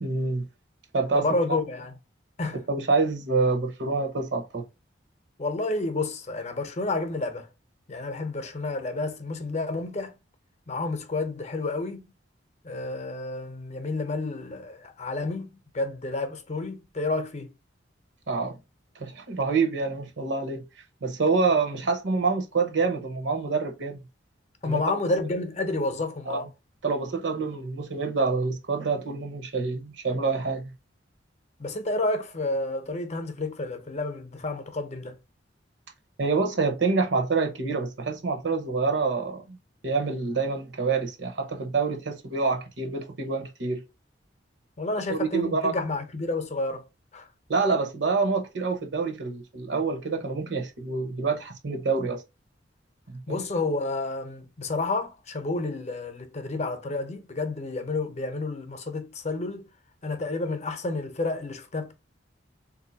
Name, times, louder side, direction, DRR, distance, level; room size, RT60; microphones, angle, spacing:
voice 1, 0.0-0.4 0.9-1.3 2.7-4.7 18.3-18.6 19.0-20.6 21.0-24.0 24.6-24.8 26.3-26.4 26.8-30.6 36.2-39.6 39.8-43.8 45.1-45.8 47.5-52.2 53.3-53.4, right 4 dB, 65° right, 0.9 m, -27 dB
voice 2, 1.1-1.9 2.4-2.6 5.4-7.5 7.9-10.1 10.7-12.0 12.6-17.5 24.6-26.5 31.6-35.2 44.8-46.9 47.1-47.3 53.3-59.7 60.0-61.9, left 2 dB, 40° left, 0.7 m, -30 dB
3.6 x 2.7 x 2.7 m
head